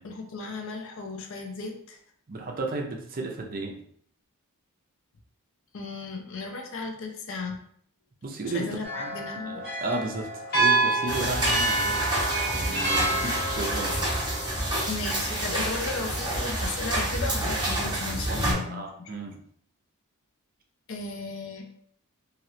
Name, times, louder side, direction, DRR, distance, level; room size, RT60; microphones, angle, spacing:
voice 1, 0.0-2.0 5.7-7.6 8.5-9.6 14.9-19.1 20.9-21.6, left 3 dB, 60° left, 3 dB, 0.5 m, -35 dB
voice 2, 2.3-3.8 8.2-8.6 9.0-12.0 12.5-14.1 18.3-19.4, right 2 dB, 40° right, 1 dB, 0.5 m, -34 dB
sound 1, 8.8-15.1, right 2 dB, 45° left, 1.2 m, -28 dB
sound 2, 11.1-18.5, right 1 dB, 20° right, 0.9 m, -28 dB
3.1 x 2.5 x 2.7 m, 0.64 s
head